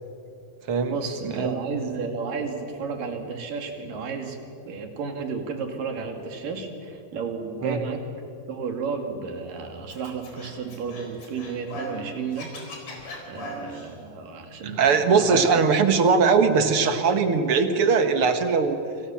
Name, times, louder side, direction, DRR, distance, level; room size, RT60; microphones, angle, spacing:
voice 1, 0.9-4.4 4.7-8.0 8.5-12.5 13.3-15.5, right 5 dB, 75° right, 4 dB, 4.1 m, -32 dB
Scratching (performance technique), 9.9-12.0 12.3-13.9, left 1 dB, 50° left, 5.6 m, -39 dB
voice 2, 14.6-18.8, right 5 dB, 50° right, 8 dB, 2.1 m, -20 dB
29.5 x 26.0 x 7.2 m, 2.7 s
omnidirectional pair, 3.9 m